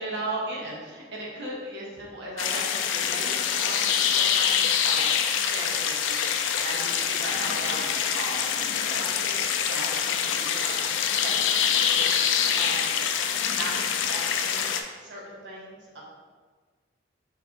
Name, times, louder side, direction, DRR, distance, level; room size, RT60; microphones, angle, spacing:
voice 1, 0.0-5.1 5.5-10.9 11.2-12.2 12.6-12.9 13.5-13.7 14.0-16.0, right 2 dB, 65° right, -4 dB, 1.0 m, -38 dB
sound 1, 2.4-14.8, left 8 dB, 85° left, 0.3 m, -25 dB
4.1 x 3.4 x 2.9 m, 1.4 s
head